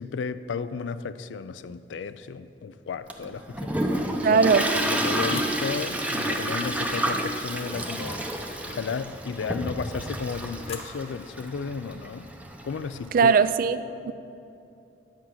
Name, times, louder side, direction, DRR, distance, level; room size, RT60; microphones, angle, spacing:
voice 1, 0.0-4.4 4.8-8.2 8.7-12.3 12.6-13.3, left 5 dB, 85° left, 14 dB, 0.4 m, -34 dB
Toilet flush, 3.1-13.3, right 1 dB, 10° right, 0.6 m, -30 dB
voice 2, 4.2-4.7 13.1-14.1, right 5 dB, 50° right, 14 dB, 0.3 m, -20 dB
sound 1, 10.1-11.5, left 3 dB, 35° left, 1.0 m, -47 dB
10.5 x 5.7 x 7.7 m, 2.8 s
head